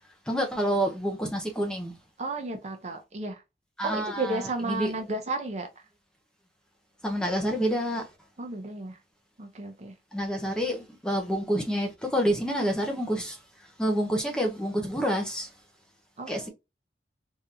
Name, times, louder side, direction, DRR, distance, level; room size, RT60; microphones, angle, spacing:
voice 1, 0.3-2.0 3.8-4.9 7.0-8.1 10.1-15.5 16.3-16.5, equal, 5° left, 0.7 m, -28 dB
voice 2, 2.2-3.4 3.8-5.8 8.4-9.0 9.4-9.9 16.2-16.5, right 2 dB, 40° right, 0.7 m, -33 dB
3.6 x 2.7 x 2.7 m
head